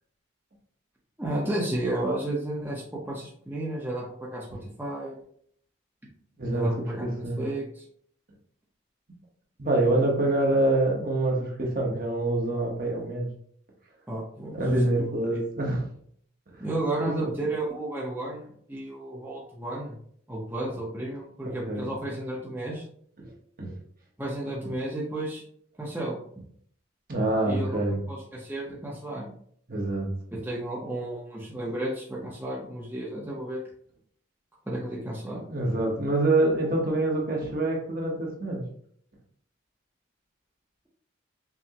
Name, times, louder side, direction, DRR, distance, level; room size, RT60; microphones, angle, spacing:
voice 1, 1.2-5.2 6.5-7.8 14.1-14.6 15.0-15.4 16.6-20.0 20.3-22.8 24.2-25.4 25.8-26.4 27.5-27.8 28.1-29.3 30.3-33.6 34.7-35.5, right 1 dB, 10° right, -5 dB, 0.6 m, -33 dB
voice 2, 6.4-7.4 9.6-13.3 14.5-15.8 17.0-17.3 21.4-21.9 23.2-23.3 23.6-23.7 27.1-28.0 29.7-30.1 35.3-38.6, right 2 dB, 45° right, -1 dB, 0.9 m, -26 dB
5.7 x 2.1 x 2.8 m, 0.63 s
head